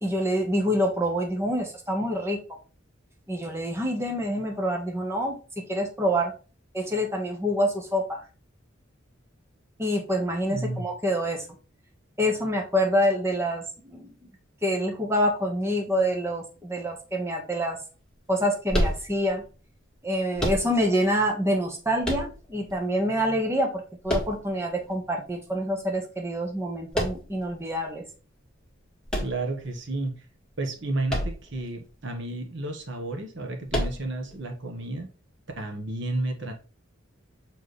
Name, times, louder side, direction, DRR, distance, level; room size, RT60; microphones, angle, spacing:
voice 1, 0.0-2.4 3.3-5.4 5.7-6.3 6.7-8.2 9.8-11.4 12.2-13.6 13.9-14.1 14.6-17.8 18.3-19.4 20.0-28.0, equal, 15° right, 1 dB, 1.4 m, -26 dB
voice 2, 10.5-10.8 29.2-30.2 30.6-35.1 35.6-36.5, right 2 dB, 65° right, 3 dB, 1.3 m, -32 dB
sound 1, 18.7-19.5 20.4-21.1 22.0-22.7 24.1-24.9 26.9-27.5 29.1-30.0 31.1-31.6 31.9-32.0 33.7-34.3, equal, 5° left, 1.8 m, -29 dB
6.9 x 4.6 x 3.2 m, 0.35 s
head